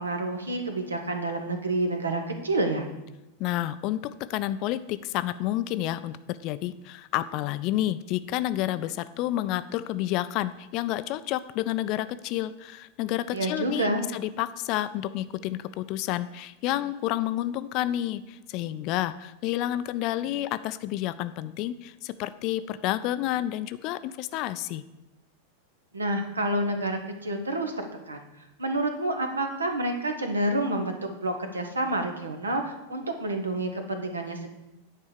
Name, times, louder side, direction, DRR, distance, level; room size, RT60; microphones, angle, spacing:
voice 1, 0.0-2.9 13.3-14.0 25.9-28.2 28.6-34.5, right 1 dB, 75° right, 5 dB, 1.2 m, -29 dB
voice 2, 3.4-24.8, left 14 dB, 40° left, 13 dB, 0.4 m, -30 dB
9.8 x 4.6 x 6.6 m, 0.96 s
figure-of-eight pair, 90°, 0 cm